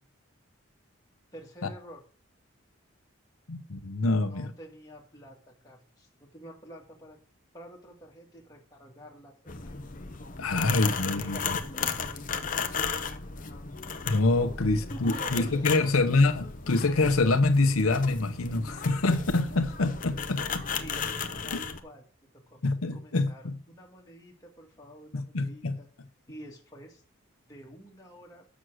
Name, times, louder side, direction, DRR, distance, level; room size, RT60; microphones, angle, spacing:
voice 1, 1.3-2.0 4.1-7.2 7.5-9.3 9.6-9.8 10.5-12.4 14.5-16.0 20.8-21.1 21.4-22.1 22.3-22.6 22.9-25.9 26.3-27.0 27.5-28.5, right 1 dB, 15° left, 2.2 m, -48 dB
voice 2, 3.5-4.5 10.4-11.5 14.1-20.6 21.5-21.6 22.6-23.5 25.1-25.8, left 2 dB, 90° left, 0.8 m, -26 dB
sound 1, 9.5-21.8, left 5 dB, 40° left, 0.7 m, -35 dB
7.8 x 6.2 x 6.2 m
head